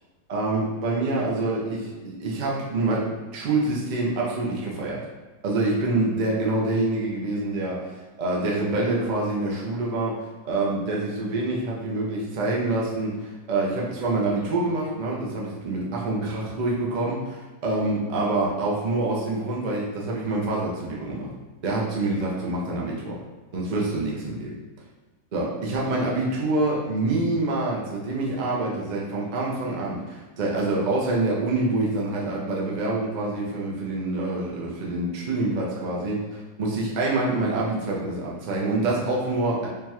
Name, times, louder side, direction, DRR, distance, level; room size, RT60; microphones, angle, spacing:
voice 1, 0.3-5.0 5.4-21.3 21.6-23.2 23.5-24.5 25.3-39.7, right 2 dB, 70° right, -4 dB, 0.4 m, -26 dB
5.0 x 2.3 x 3.0 m, 1.2 s
omnidirectional pair, 1.9 m